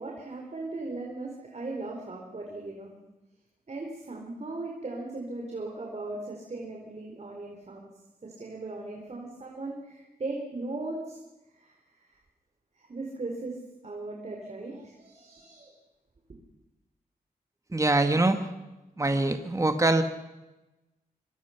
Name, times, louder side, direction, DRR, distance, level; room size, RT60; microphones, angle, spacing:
voice 1, 0.0-2.9 3.7-7.9 8.2-11.2 11.6-11.7 12.1-12.2 12.8-13.5 13.8-15.7, right 2 dB, 45° right, 0 dB, 4.2 m, -38 dB
voice 2, 17.7-18.5 19.0-20.0, right 2 dB, 20° right, 7 dB, 1.8 m, -24 dB
25.0 x 24.5 x 5.9 m, 1.0 s
wide cardioid pair, 90°, 16 cm